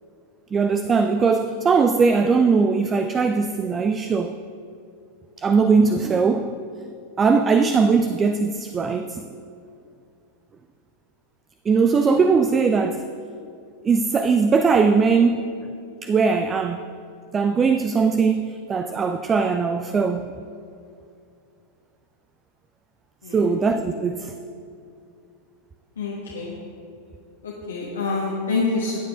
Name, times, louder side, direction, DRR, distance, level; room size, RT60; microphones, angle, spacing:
voice 1, 0.5-4.4 5.4-6.6 7.2-9.2 11.7-13.1 13.8-15.4 16.0-16.9 17.3-20.3 23.3-24.3, right 5 dB, 20° right, 0.3 m, -20 dB
voice 2, 26.0-26.5 27.4-29.0, left 3 dB, 70° left, 1.3 m, -26 dB
15.5 x 8.7 x 2.5 m
figure-of-eight pair, 90°, 0 cm